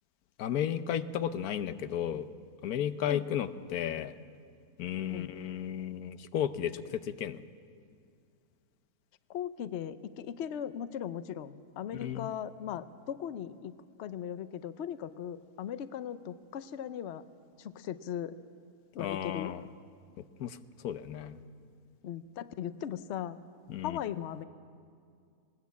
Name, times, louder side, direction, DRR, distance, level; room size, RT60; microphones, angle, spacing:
voice 1, 0.4-2.3 2.6-4.1 4.8-7.4 11.9-12.3 19.0-19.6 20.4-21.4 23.7-24.0, left 10 dB, 85° left, 12 dB, 1.2 m, -34 dB
voice 2, 9.3-17.2 17.6-18.4 18.9-19.5 22.0-23.4 23.8-24.4, left 9 dB, 60° left, 13 dB, 0.9 m, -38 dB
19.5 x 19.5 x 8.3 m, 2.3 s
omnidirectional pair, 1.5 m